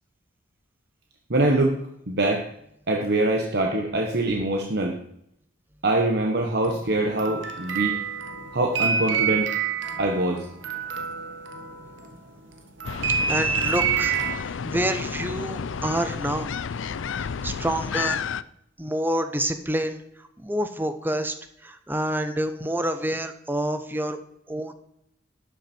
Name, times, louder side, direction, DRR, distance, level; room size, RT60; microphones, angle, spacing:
voice 1, 1.3-1.8 2.1-2.5 2.9-4.9 5.8-7.9 8.5-9.5 10.0-10.5, right 2 dB, 60° right, 2 dB, 1.3 m, -23 dB
sound 1, 6.6-12.3 12.8-14.3, right 7 dB, 80° right, 1.6 m, -28 dB
sound 2, 12.8-18.4, left 6 dB, 90° left, 0.5 m, -31 dB
voice 2, 13.1-16.5 17.2-18.2 18.8-21.3 21.6-24.2 24.5-24.7, right 1 dB, 10° right, 9 dB, 0.9 m, -28 dB
12.5 x 9.3 x 4.5 m, 0.73 s
head